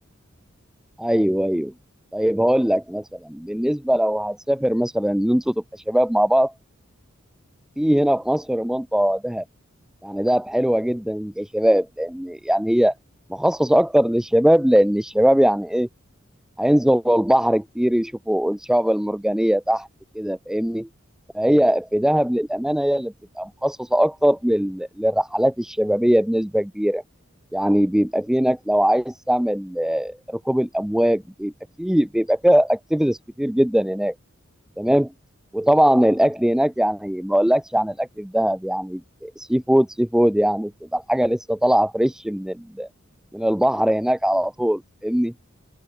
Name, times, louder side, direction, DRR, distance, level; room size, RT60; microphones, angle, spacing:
voice 1, 1.0-1.7 2.1-6.5 7.8-9.4 10.0-12.9 13.3-15.9 16.6-19.9 20.1-20.9 21.3-27.0 27.5-31.5 31.8-34.1 34.8-35.1 35.5-42.9 43.3-45.3, equal, 5° right, 0.4 m, -21 dB
open air
head